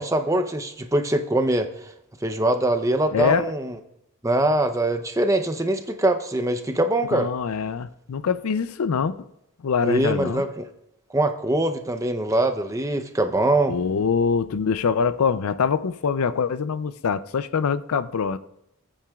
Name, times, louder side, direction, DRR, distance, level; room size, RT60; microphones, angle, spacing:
voice 1, 0.0-1.9 2.2-3.8 4.2-7.3 9.8-10.7 11.1-13.7, right 1 dB, 15° right, 0.6 m, -23 dB
voice 2, 3.1-3.5 7.1-9.1 9.6-10.4 13.7-18.4, left 6 dB, 75° left, 0.5 m, -24 dB
19.0 x 8.8 x 2.4 m
head